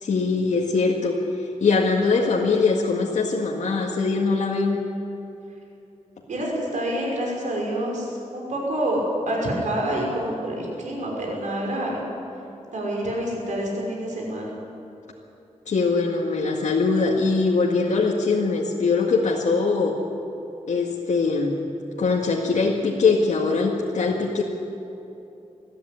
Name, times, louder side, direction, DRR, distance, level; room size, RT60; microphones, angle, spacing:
voice 1, 0.0-1.2 1.6-4.8 15.7-20.0 20.7-21.6 22.0-24.4, left 4 dB, 75° left, -2 dB, 1.9 m, -22 dB
voice 2, 6.3-12.0 12.7-14.5, right 1 dB, 90° right, -2 dB, 5.9 m, -27 dB
21.5 x 13.5 x 9.9 m, 2.9 s
wide cardioid pair, 140°, 12 cm